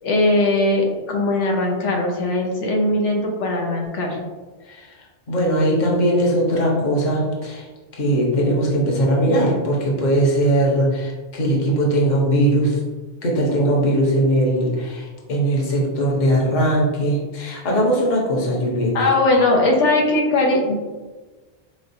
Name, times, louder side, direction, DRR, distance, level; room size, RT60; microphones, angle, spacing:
voice 1, 0.0-4.2 18.9-20.7, left 2 dB, 90° left, 0 dB, 1.0 m, -19 dB
voice 2, 5.3-7.7 7.9-12.8 13.2-19.1, right 1 dB, 45° left, -3 dB, 0.9 m, -20 dB
4.1 x 3.1 x 2.6 m, 1.3 s
omnidirectional pair, 1.2 m